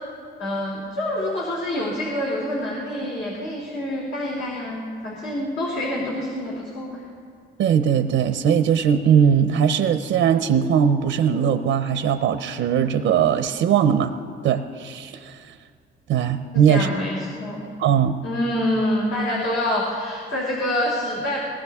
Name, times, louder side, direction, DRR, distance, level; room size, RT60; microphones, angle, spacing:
voice 1, 0.4-7.0 16.5-17.6 18.2-21.4, left 1 dB, 70° left, -4 dB, 3.1 m, -26 dB
voice 2, 7.6-14.1 14.4-15.4 16.1-16.9 17.8-18.2, right 8 dB, 80° right, 9 dB, 0.7 m, -20 dB
20.5 x 18.0 x 3.6 m, 2.2 s
cardioid pair, 90°, 20 cm